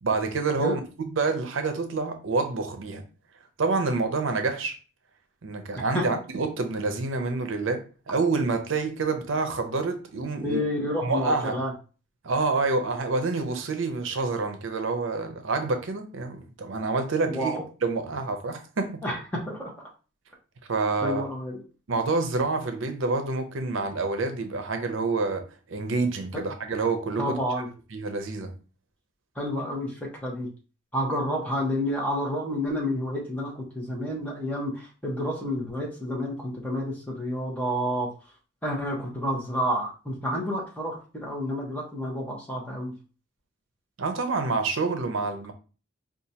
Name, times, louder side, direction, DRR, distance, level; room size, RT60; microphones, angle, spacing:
voice 1, 0.0-3.0 3.6-4.7 5.4-10.6 11.0-11.6 12.2-17.5 17.8-19.0 20.7-21.3 21.9-27.4 27.9-28.5 44.0-45.5, right 3 dB, 80° right, 0.6 m, -27 dB
voice 2, 10.4-11.7 17.2-17.6 19.0-19.7 21.0-21.6 27.2-27.7 29.4-30.5 30.9-38.1 38.6-42.9, equal, 10° left, 1.1 m, -29 dB
4.9 x 2.4 x 2.8 m
head